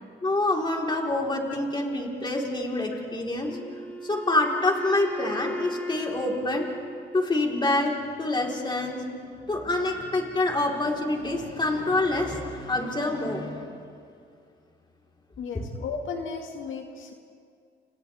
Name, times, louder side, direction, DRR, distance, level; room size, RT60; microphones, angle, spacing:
voice 1, 0.2-3.5 4.0-6.7 7.1-7.9 8.2-9.0 9.4-13.7, left 2 dB, 25° left, -1 dB, 4.1 m, -26 dB
Wind instrument woodwind instrument, 3.5-7.5, equal, 5° left, 2.8 m, -38 dB
voice 2, 15.4-17.1, left 5 dB, 80° left, 2 dB, 2.0 m, -35 dB
30.0 x 28.5 x 3.6 m, 2.3 s
cardioid pair, 90°, 20 cm